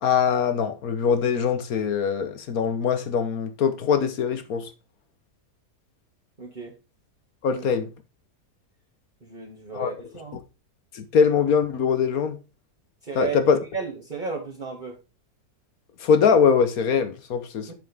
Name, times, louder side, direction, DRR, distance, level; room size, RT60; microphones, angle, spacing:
voice 1, 0.0-4.7 7.4-7.9 9.7-9.9 10.9-12.4 13.1-13.6 16.0-17.7, left 6 dB, 60° left, 1.4 m, -22 dB
voice 2, 6.4-6.7 7.5-7.6 9.2-10.4 13.0-13.4 13.7-15.0 17.7-17.8, right 5 dB, 25° right, 2.1 m, -34 dB
7.6 x 7.5 x 3.5 m
omnidirectional pair, 1.8 m